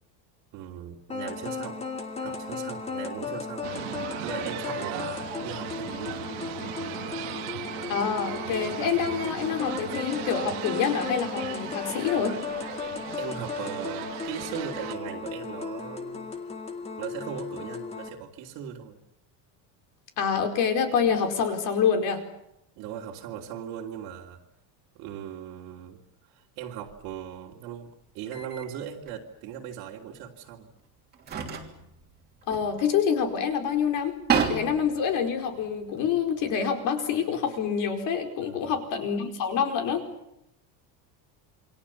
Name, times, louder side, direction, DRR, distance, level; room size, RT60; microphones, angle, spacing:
voice 1, 0.5-1.9 2.2-3.7 4.2-6.3 13.1-16.4 17.0-19.0 22.8-24.4 24.9-26.0 26.3-27.9 28.1-30.7 38.4-38.8, right 9 dB, 55° right, -1 dB, 3.0 m, -39 dB
sound 1, 1.1-18.1, left 5 dB, 15° left, 2.0 m, -36 dB
sound 2, 3.6-15.0, right 15 dB, 70° right, 2.2 m, -38 dB
voice 2, 7.9-12.4 20.2-22.2 32.5-40.0, left 7 dB, 45° left, 4 dB, 4.8 m, -27 dB
sound 3, 26.9-27.1 28.3-28.7 29.1-29.2 30.4-30.5 31.1-33.3 33.7-33.8 34.0-36.5, right 6 dB, 20° right, 3.1 m, -32 dB
28.5 x 24.0 x 7.3 m, 0.83 s
cardioid pair, 175°, 43 cm